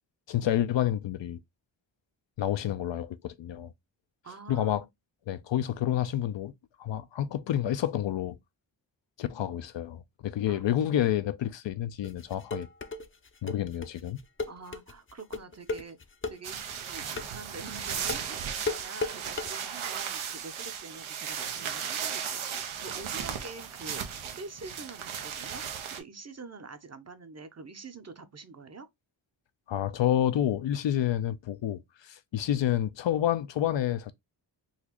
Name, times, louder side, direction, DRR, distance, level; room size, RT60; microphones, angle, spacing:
voice 1, 0.3-1.4 2.4-3.7 4.5-4.8 5.3-6.5 6.8-8.4 9.2-12.7 13.4-14.2 29.7-34.1, left 11 dB, 70° left, 0.5 m, -29 dB
voice 2, 4.2-4.8 10.5-10.6 14.5-16.0 16.3-24.0 24.4-25.6 25.9-28.9, right 4 dB, 35° right, 0.7 m, -45 dB
sound 1, 12.0-19.5, left 3 dB, 25° left, 0.5 m, -35 dB
sound 2, 16.4-26.0, right 8 dB, 85° right, 0.7 m, -36 dB
4.1 x 2.4 x 2.9 m
cardioid pair, 45°, 47 cm